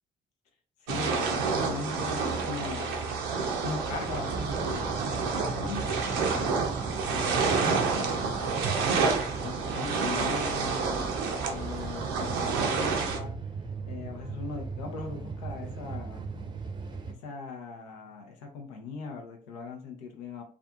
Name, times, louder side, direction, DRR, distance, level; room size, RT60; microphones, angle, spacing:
voice 1, 0.8-3.0 3.5-6.6 7.1-8.3 8.9-10.8 11.5-13.3 13.9-16.3 17.1-20.4, left 4 dB, 90° left, 3 dB, 0.5 m, -39 dB
sound 1, 0.9-13.2, right 5 dB, 80° right, 0.5 m, -29 dB
sound 2, 3.8-17.1, right 4 dB, 25° right, 0.5 m, -38 dB
2.5 x 2.3 x 2.3 m, 0.41 s
hypercardioid pair, 45°, 20 cm